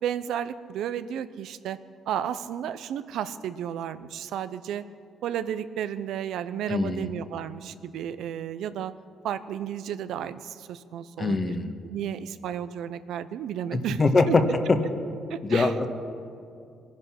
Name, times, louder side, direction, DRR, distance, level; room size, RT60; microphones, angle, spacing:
voice 1, 0.0-1.8 2.1-4.8 5.2-8.9 9.2-11.6 11.9-14.0 14.3-14.4 15.3-15.7, right 9 dB, 80° right, 13 dB, 0.6 m, -33 dB
voice 2, 6.7-7.1 11.2-11.7 13.7-14.3 15.4-15.9, left 3 dB, 35° left, 7 dB, 1.4 m, -24 dB
21.0 x 10.5 x 5.9 m, 2.4 s
cardioid pair, 90°, 0 cm